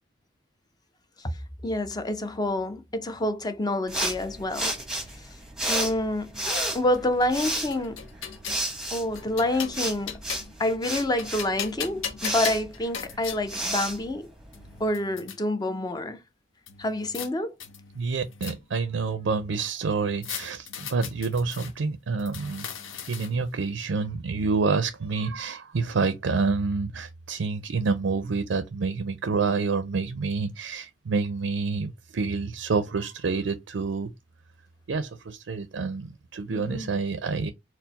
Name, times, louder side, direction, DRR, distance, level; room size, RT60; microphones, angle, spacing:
voice 1, 1.6-4.7 5.2-5.3 5.7-6.5 6.7-8.0 8.9-10.2 10.6-14.3 14.8-16.2 16.8-17.5 36.5-36.9, left 1 dB, 20° left, 0.5 m, -28 dB
sound 1, 3.9-14.8, right 1 dB, 5° right, 0.9 m, -32 dB
sound 2, 6.9-8.6 9.2-10.6 11.0-13.4 14.2-14.3 14.5-15.4 16.7-17.3 17.6-18.9 20.2-21.7 22.2-23.5, left 8 dB, 85° left, 0.7 m, -38 dB
voice 2, 18.0-22.7 23.1-34.1 34.9-37.5, right 4 dB, 70° right, 0.4 m, -28 dB
4.4 x 2.0 x 4.0 m
head